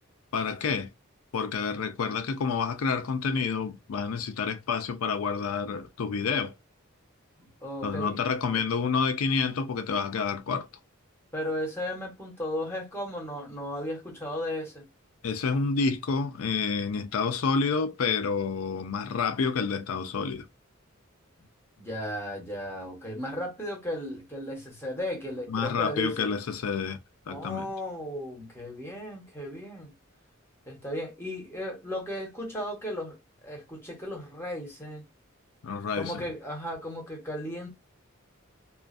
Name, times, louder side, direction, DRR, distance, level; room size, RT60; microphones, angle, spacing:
voice 1, 0.3-0.9 1.3-6.5 7.8-10.7 15.2-20.5 25.5-27.0 27.3-27.7 35.6-36.3, left 5 dB, 85° left, 0.4 m, -29 dB
voice 2, 7.4-8.2 8.5-8.6 11.3-14.8 21.8-26.3 27.3-29.9 30.7-33.2 33.4-35.0 35.9-37.7, equal, 10° left, 1.0 m, -35 dB
2.4 x 2.3 x 2.5 m
head